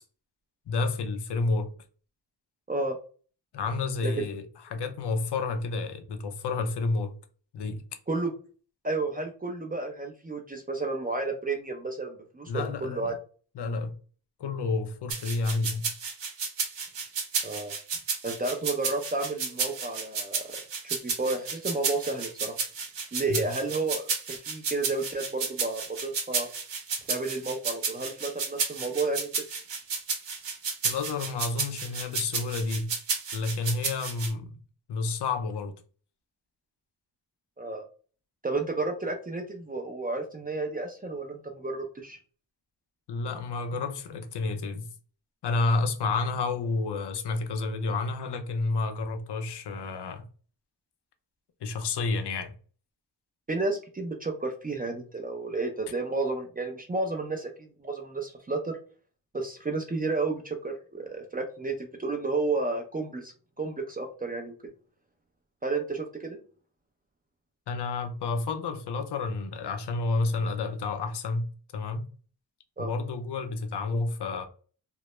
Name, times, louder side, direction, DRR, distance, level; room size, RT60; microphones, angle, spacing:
voice 1, 0.7-1.7 3.5-7.1 7.5-7.8 12.5-13.1 13.5-14.0 14.4-15.9 23.3-23.4 30.8-32.9 33.3-34.6 34.9-35.7 43.1-44.9 45.4-50.2 51.6-52.5 67.7-71.5 71.7-72.0 72.8-74.5, left 3 dB, 65° left, 0.5 m, -30 dB
voice 2, 8.8-13.1 17.4-17.7 18.2-22.6 23.1-26.5 27.1-29.3 37.6-37.8 38.4-42.2 53.5-57.5 57.8-58.8 59.3-63.3 63.6-64.5 65.6-66.4 72.8-72.9, right 3 dB, 20° right, 0.4 m, -31 dB
sound 1, 15.1-34.3, right 5 dB, 75° right, 0.8 m, -32 dB
2.2 x 2.0 x 2.9 m
cardioid pair, 90°, 44 cm